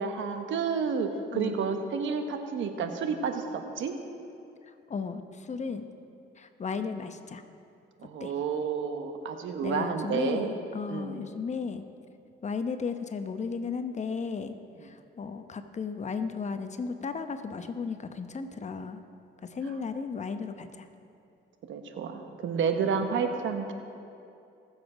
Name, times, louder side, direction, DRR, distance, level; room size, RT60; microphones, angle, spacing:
voice 1, 0.0-3.9 8.0-10.6 10.9-11.2 21.7-23.7, right 6 dB, 75° right, 6 dB, 1.1 m, -30 dB
voice 2, 1.3-1.8 4.9-5.9 6.4-7.4 8.2-8.3 9.6-11.8 12.4-14.6 14.8-19.0 19.4-20.9, left 5 dB, 35° left, 8 dB, 0.8 m, -35 dB
19.5 x 7.3 x 5.0 m, 2.6 s
cardioid pair, 90°, 20 cm